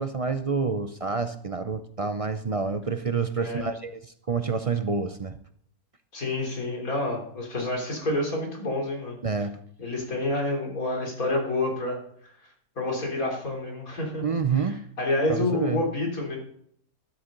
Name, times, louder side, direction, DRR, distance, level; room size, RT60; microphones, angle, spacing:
voice 1, 0.0-5.4 9.2-9.6 14.2-14.9 15.3-15.8, right 5 dB, 60° right, 9 dB, 0.3 m, -28 dB
voice 2, 3.4-3.7 6.1-9.2 9.8-12.0 12.2-12.3 12.8-14.2 15.0-16.4, left 2 dB, 75° left, 0 dB, 4.0 m, -28 dB
13.5 x 12.5 x 3.8 m, 0.66 s
omnidirectional pair, 1.5 m